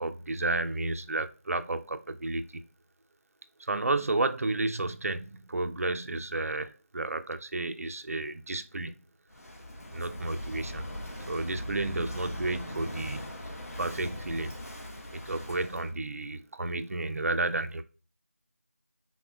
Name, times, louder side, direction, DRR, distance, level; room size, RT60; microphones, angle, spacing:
voice 1, 0.0-2.6 3.6-9.0 9.9-10.9 11.3-13.3 13.8-14.5 15.1-17.8, right 2 dB, 70° right, 0.4 m, -32 dB
Walk footsteps / Wind / Waves surf, 9.3-15.9, left 1 dB, 90° left, 0.8 m, -40 dB
3.6 x 2.1 x 2.3 m
figure-of-eight pair, 175°, 8 cm